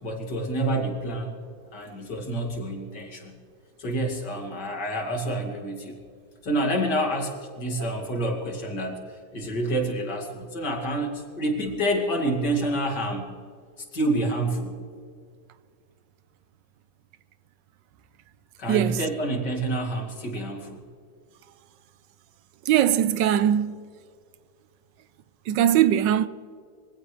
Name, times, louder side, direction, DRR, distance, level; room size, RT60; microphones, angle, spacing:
voice 1, 0.0-1.4 1.7-3.3 3.8-6.0 6.4-13.3 13.9-14.8 18.6-20.8, right 1 dB, 70° left, 3.1 m, -28 dB
voice 2, 18.7-19.0 22.6-23.8 25.5-26.3, right 10 dB, 85° right, 1.4 m, -21 dB
23.5 x 16.5 x 3.3 m
omnidirectional pair, 1.9 m